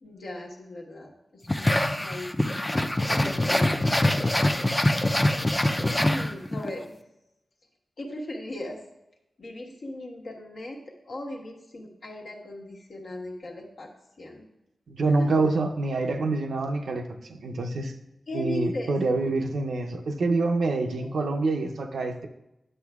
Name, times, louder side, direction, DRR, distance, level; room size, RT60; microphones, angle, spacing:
voice 1, 0.0-2.3 2.7-4.2 5.8-7.0 8.0-8.8 9.4-10.8 11.0-13.9 14.2-14.5 15.1-15.3 18.3-18.9 21.0-21.3, left 1 dB, 70° left, -1 dB, 1.3 m, -38 dB
sound 1, 1.5-6.7, left 1 dB, 15° left, 0.5 m, -24 dB
voice 2, 14.9-17.9 18.3-22.3, right 3 dB, 80° right, 4 dB, 0.6 m, -26 dB
9.9 x 7.0 x 2.4 m, 0.90 s
cardioid pair, 70°, 0 cm